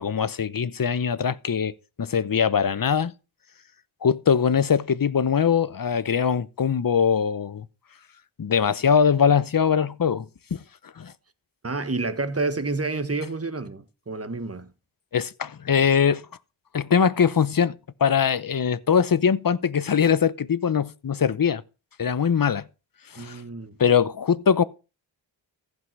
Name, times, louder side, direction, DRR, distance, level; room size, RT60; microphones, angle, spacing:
voice 1, 0.0-3.1 4.0-7.7 8.4-10.3 10.5-10.6 11.0-11.1 15.1-16.3 16.7-21.6 22.0-22.7 23.1-23.4 23.8-24.6, left 7 dB, 45° left, 0.8 m, -22 dB
voice 2, 11.6-14.7 23.2-23.7, right 3 dB, 30° right, 1.4 m, -29 dB
15.0 x 5.5 x 6.1 m
cardioid pair, 55°, 48 cm